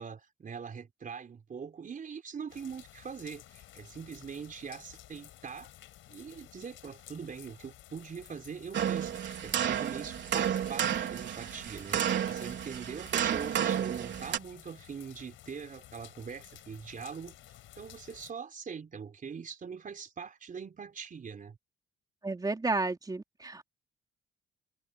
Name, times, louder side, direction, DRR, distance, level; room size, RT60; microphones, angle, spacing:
voice 1, 0.0-5.7 6.1-17.3 17.8-21.6, right 6 dB, 45° right, 4.1 m, -42 dB
sound 1, 2.5-18.3, left 13 dB, 85° left, 5.9 m, -53 dB
sound 2, 8.7-14.4, right 9 dB, 65° right, 3.9 m, -31 dB
voice 2, 22.2-23.8, right 3 dB, 20° right, 3.6 m, -32 dB
cardioid pair, 90°, 20 cm